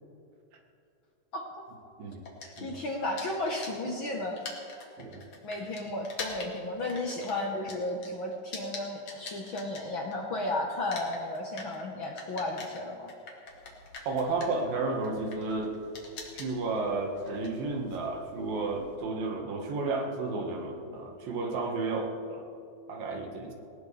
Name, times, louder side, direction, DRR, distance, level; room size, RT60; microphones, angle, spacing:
sound 1, 2.2-10.4 10.7-19.0, left 4 dB, 50° left, 2.9 m, -45 dB
voice 1, 2.4-4.4 5.4-13.1, left 2 dB, 80° left, -1 dB, 1.1 m, -34 dB
voice 2, 14.1-15.8 16.3-22.4 22.9-23.5, right 3 dB, 70° right, 2 dB, 3.3 m, -32 dB
19.0 x 19.0 x 3.4 m, 2.6 s
omnidirectional pair, 4.3 m